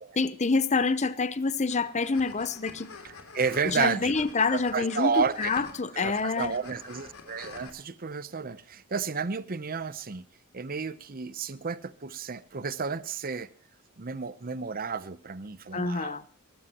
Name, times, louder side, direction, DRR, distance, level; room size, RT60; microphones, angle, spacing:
voice 1, 0.1-2.9 3.6-6.6 15.7-16.2, left 4 dB, 30° left, 0.8 m, -27 dB
sound 1, 1.7-7.7, left 4 dB, 75° left, 3.2 m, -47 dB
voice 2, 3.3-5.5 5.9-10.2 10.5-13.5 14.0-16.3, right 5 dB, 40° right, 0.7 m, -32 dB
24.5 x 13.0 x 3.0 m
head